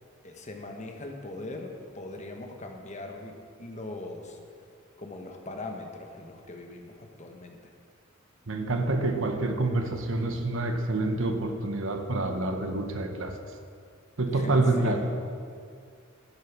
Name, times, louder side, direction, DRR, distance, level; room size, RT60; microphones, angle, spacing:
voice 1, 0.2-3.3 3.6-4.4 5.0-7.6 14.3-15.1, left 2 dB, 35° left, 3 dB, 1.2 m, -40 dB
voice 2, 8.5-13.3 14.2-15.1, right 2 dB, 65° right, 6 dB, 1.1 m, -27 dB
11.5 x 9.8 x 6.0 m, 2.3 s
head